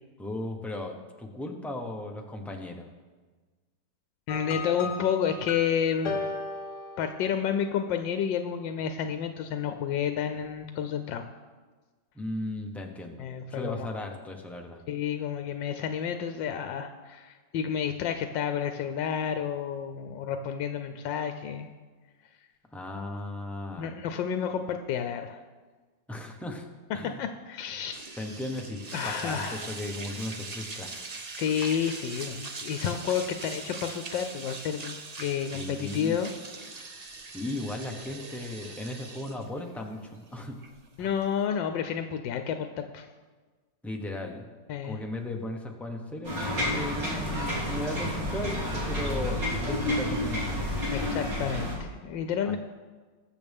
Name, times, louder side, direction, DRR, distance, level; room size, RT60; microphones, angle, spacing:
voice 1, 0.2-2.9 12.2-13.2 13.5-14.8 22.7-23.9 26.1-26.6 26.9-27.2 28.2-30.9 35.5-36.2 37.3-40.5 41.0-41.1 43.8-44.5 44.8-50.7 52.4-52.6, left 1 dB, ahead, 2 dB, 0.6 m, -36 dB
voice 2, 4.3-6.3 7.0-11.2 13.2-13.9 14.9-21.7 23.8-25.4 27.0-28.0 28.9-29.6 31.4-36.3 41.0-43.1 44.7-45.0 50.9-52.6, left 8 dB, 90° left, 7 dB, 1.3 m, -30 dB
sound 1, 4.3-7.7, left 4 dB, 65° left, 1.6 m, -36 dB
sound 2, 27.9-41.4, right 3 dB, 55° right, 0.4 m, -41 dB
sound 3, 46.2-51.7, left 1 dB, 85° right, 3.9 m, -30 dB
20.5 x 7.0 x 3.5 m, 1.4 s
omnidirectional pair, 1.9 m